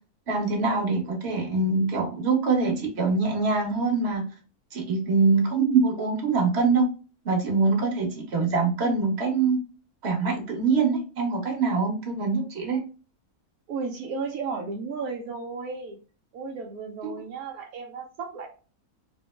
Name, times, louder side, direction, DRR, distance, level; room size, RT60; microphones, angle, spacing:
voice 1, 0.3-4.2 4.7-6.8 7.2-9.6 10.0-12.8 17.0-17.1, right 4 dB, 45° right, 2 dB, 1.2 m, -24 dB
voice 2, 13.7-16.0 16.3-18.5, right 4 dB, 75° right, 2 dB, 1.1 m, -34 dB
3.8 x 2.0 x 3.1 m, 0.36 s
omnidirectional pair, 1.6 m